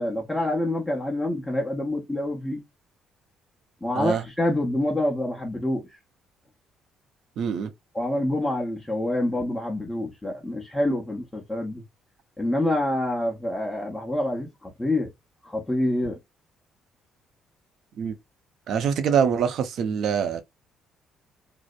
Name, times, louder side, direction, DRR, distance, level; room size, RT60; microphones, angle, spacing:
voice 1, 0.0-2.6 3.8-5.9 7.9-11.8 12.4-15.1 15.4-16.2, left 1 dB, 10° left, 0.9 m, -27 dB
voice 2, 7.4-7.7 18.0-18.2 18.7-20.4, right 7 dB, 70° right, 0.6 m, -24 dB
2.7 x 2.0 x 2.4 m
supercardioid pair, 70°, 0 cm